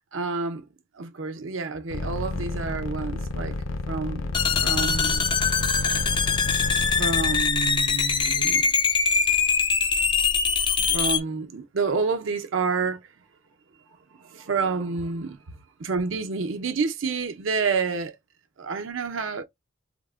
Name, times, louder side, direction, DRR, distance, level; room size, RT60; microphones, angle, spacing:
voice 1, 0.1-0.7 1.0-3.6 3.9-4.3 4.6-5.3 7.0-8.7 10.8-13.1 14.2-15.4 15.8-18.1 18.6-19.4, right 4 dB, 75° right, 0.6 m, -29 dB
sound 1, 1.9-7.4, left 2 dB, 80° left, 0.5 m, -30 dB
sound 2, 4.3-11.2, left 5 dB, 25° left, 0.3 m, -23 dB
3.5 x 2.1 x 2.3 m
head